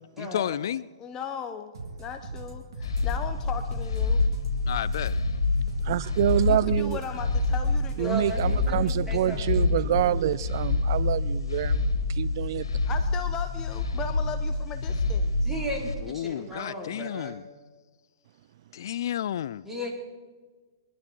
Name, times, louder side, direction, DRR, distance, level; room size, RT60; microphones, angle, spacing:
voice 1, 0.2-0.9 4.7-5.2 16.0-17.4 18.7-19.6, left 10 dB, 60° left, 20 dB, 0.4 m, -31 dB
voice 2, 1.0-1.7 2.0-4.2 6.5-8.2 12.8-15.5, left 7 dB, 25° left, 8 dB, 1.0 m, -37 dB
sound 1, 1.7-9.5, right 3 dB, 70° right, 3.7 m, -40 dB
sound 2, 2.8-15.9, left 3 dB, 80° left, 2.2 m, -27 dB
voice 3, 5.8-7.0 8.0-12.7, right 13 dB, 55° right, 18 dB, 0.4 m, -27 dB
voice 4, 8.0-10.0 15.4-17.4 19.6-19.9, equal, 5° right, -2 dB, 4.5 m, -35 dB
23.5 x 11.5 x 4.6 m, 1.4 s
hypercardioid pair, 120°, 2 cm